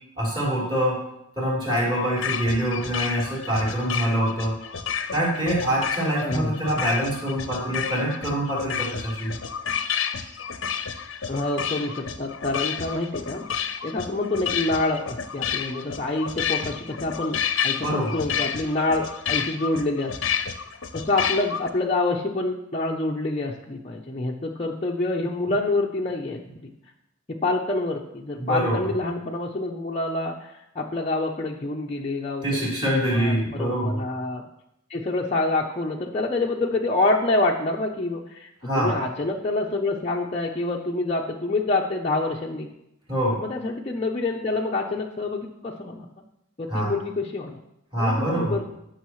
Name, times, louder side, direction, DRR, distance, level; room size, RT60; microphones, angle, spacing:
voice 1, 0.2-1.0 1.4-4.6 5.1-9.4 17.8-18.1 28.4-28.9 32.4-34.0 38.6-38.9 43.1-43.4 46.7-46.9 47.9-48.6, right 1 dB, 25° right, -6 dB, 3.8 m, -25 dB
sound 1, 2.2-21.7, left 7 dB, 65° left, 0.7 m, -30 dB
voice 2, 6.2-6.5 11.3-13.4 13.8-20.2 20.9-26.7 27.3-34.4 34.9-42.7 43.3-46.1 46.6-47.6 48.0-48.6, left 2 dB, 30° left, -2 dB, 0.7 m, -27 dB
16.5 x 6.4 x 3.2 m, 0.84 s
head